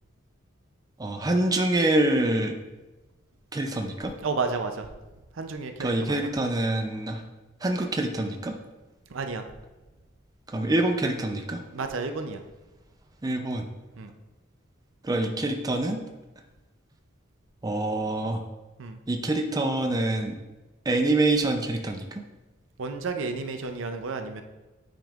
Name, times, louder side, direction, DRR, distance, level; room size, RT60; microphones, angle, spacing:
voice 1, 1.0-2.5 3.5-4.1 5.8-7.2 7.6-8.5 10.5-11.6 13.2-13.6 15.0-16.0 17.6-18.4 19.1-20.4 20.9-22.0, right 2 dB, 20° right, 3 dB, 0.4 m, -25 dB
voice 2, 4.2-4.9 5.4-6.2 9.1-9.4 11.7-12.4 14.0-14.1 18.8-19.0 22.8-24.4, right 4 dB, 70° right, 7 dB, 0.5 m, -31 dB
8.9 x 5.2 x 2.4 m, 1.1 s
head